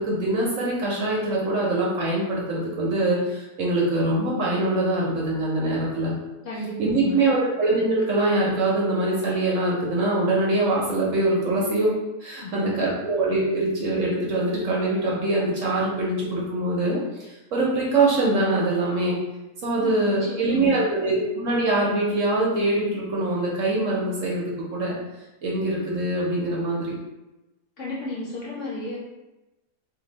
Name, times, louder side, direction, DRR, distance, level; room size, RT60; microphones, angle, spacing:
voice 1, 0.0-6.1 6.8-11.9 12.2-19.2 19.6-25.0 25.4-26.9, right 2 dB, 60° right, -4 dB, 0.9 m, -23 dB
voice 2, 6.4-7.2 12.4-12.9 19.8-20.9 27.8-29.0, left 2 dB, 70° left, -4 dB, 0.7 m, -33 dB
2.6 x 2.6 x 3.9 m, 1.0 s
omnidirectional pair, 1.8 m